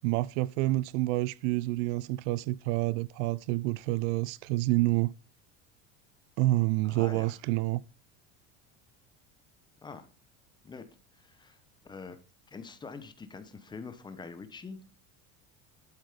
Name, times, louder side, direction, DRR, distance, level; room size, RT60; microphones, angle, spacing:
voice 1, 0.0-5.1 6.4-7.8, right 18 dB, 70° right, 0.5 m, -28 dB
voice 2, 6.8-7.3 9.8-10.1 10.6-10.8 11.2-11.6 11.8-12.2 12.5-14.9, left 4 dB, 10° left, 1.0 m, -44 dB
12.0 x 8.3 x 5.1 m
cardioid pair, 175°, 37 cm